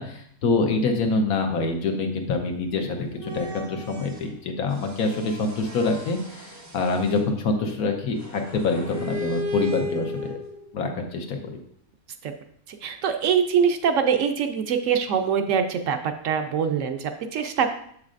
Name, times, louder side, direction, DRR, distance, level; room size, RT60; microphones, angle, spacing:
voice 1, 0.0-10.4 10.7-11.5, left 3 dB, 90° left, 3 dB, 1.4 m, -26 dB
sound 1, 3.1-4.3 4.7-7.2 8.2-10.8, left 1 dB, 25° right, 0.4 m, -35 dB
voice 2, 12.8-16.0 16.2-17.7, right 7 dB, 70° right, 7 dB, 0.9 m, -23 dB
7.3 x 6.4 x 2.5 m, 0.65 s
omnidirectional pair, 1.5 m